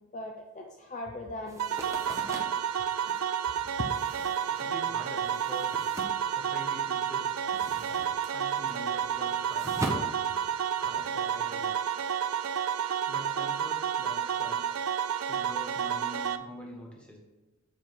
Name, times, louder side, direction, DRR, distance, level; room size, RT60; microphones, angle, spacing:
voice 1, 0.1-2.2 3.5-3.6, left 1 dB, 35° left, 2 dB, 0.5 m, -41 dB
sound 1, 1.5-6.9 7.2-11.1, right 1 dB, 15° right, 0.7 m, -41 dB
sound 2, 1.6-16.4, right 8 dB, 75° right, 0.4 m, -30 dB
voice 2, 4.6-5.7 6.3-7.5 8.3-10.2 10.8-11.8 13.1-14.7 15.3-17.2, equal, 5° left, -2 dB, 1.4 m, -45 dB
7.5 x 4.4 x 4.6 m, 1.1 s
head